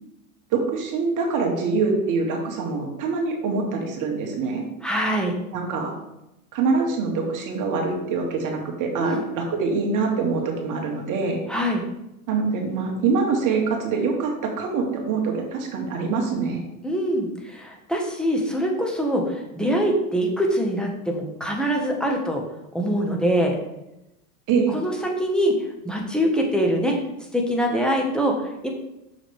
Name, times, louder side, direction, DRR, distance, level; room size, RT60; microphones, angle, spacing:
voice 1, 0.5-4.6 5.5-5.9 6.5-11.4 12.3-16.6 24.5-24.8, right 4 dB, 45° right, 1 dB, 2.1 m, -24 dB
voice 2, 4.8-5.3 9.0-9.2 11.5-11.8 16.8-22.4 22.7-23.6 24.7-25.6 25.8-27.0 27.3-28.7, equal, ahead, 0 dB, 1.6 m, -23 dB
6.6 x 6.2 x 3.5 m, 0.89 s
hypercardioid pair, 90°, 43 cm